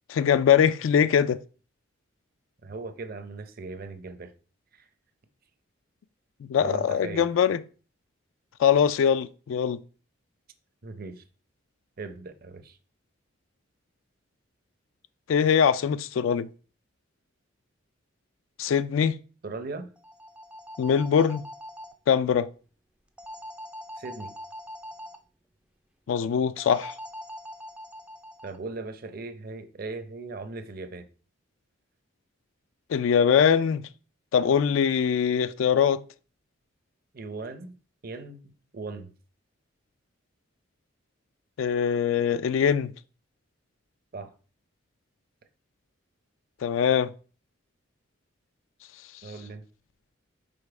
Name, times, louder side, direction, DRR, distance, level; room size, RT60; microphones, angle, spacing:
voice 1, 0.1-1.4 6.5-7.6 8.6-9.8 15.3-16.5 18.6-19.2 20.8-21.4 22.1-22.5 26.1-26.9 32.9-33.8 34.3-36.0 41.6-42.9 46.6-47.1, left 7 dB, 75° left, 0.3 m, -22 dB
voice 2, 2.6-4.3 4.7-4.9 6.6-7.3 10.8-11.2 12.0-12.8 19.4-19.9 24.0-24.3 28.4-31.1 37.1-37.7 38.0-39.1 44.1-44.3 49.2-49.6, right 3 dB, 45° right, 0.6 m, -38 dB
sound 1, 20.0-21.9 23.2-25.2 26.6-28.6, equal, 5° right, 0.3 m, -42 dB
5.2 x 4.1 x 4.8 m
head